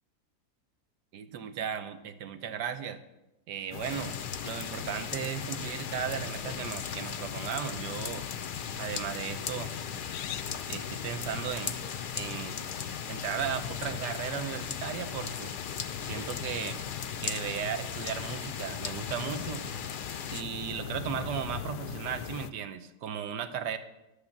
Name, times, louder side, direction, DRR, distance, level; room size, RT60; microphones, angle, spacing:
voice 1, 1.1-3.0 3.5-4.1 4.4-8.3 8.8-9.7 10.7-11.8 12.1-12.6 13.1-15.5 16.0-16.8 17.2-19.7 20.3-23.8, right 8 dB, 90° right, 9 dB, 1.5 m, -36 dB
sound 1, 3.7-22.5, left 9 dB, 90° left, 1.2 m, -40 dB
sound 2, 3.8-20.4, left 6 dB, 65° left, 0.5 m, -39 dB
13.5 x 6.5 x 7.2 m, 0.93 s
omnidirectional pair, 1.8 m